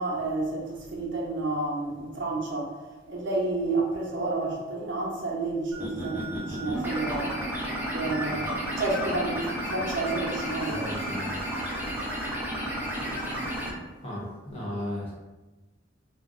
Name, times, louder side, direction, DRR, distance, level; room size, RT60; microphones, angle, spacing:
voice 1, 0.0-2.7 3.1-7.4 7.9-10.8 12.7-13.4, right 2 dB, 65° right, -2 dB, 0.7 m, -30 dB
sound 1, 5.7-13.7, equal, 10° right, 0.5 m, -32 dB
voice 2, 10.7-11.4 12.4-12.6 14.0-15.1, left 1 dB, 30° left, -5 dB, 0.8 m, -36 dB
2.5 x 2.0 x 3.7 m, 1.2 s
head